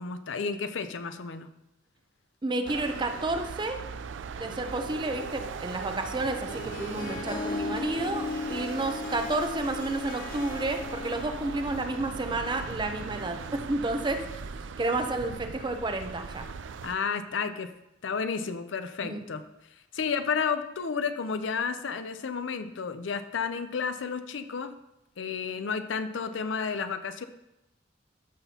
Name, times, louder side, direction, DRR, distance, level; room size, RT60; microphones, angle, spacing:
voice 1, 0.0-1.5 16.8-17.7 18.0-19.5 19.9-24.8 25.2-27.2, left 5 dB, 85° left, 10 dB, 0.5 m, -31 dB
voice 2, 2.4-3.8 4.4-14.2 14.8-16.4 19.0-19.2, right 2 dB, 25° right, 6 dB, 0.6 m, -31 dB
sound 1, 2.7-17.0, right 6 dB, 80° right, 0.4 m, -39 dB
Harp, 6.2-12.7, left 3 dB, 50° left, 0.9 m, -37 dB
13.5 x 6.0 x 2.8 m, 0.90 s
head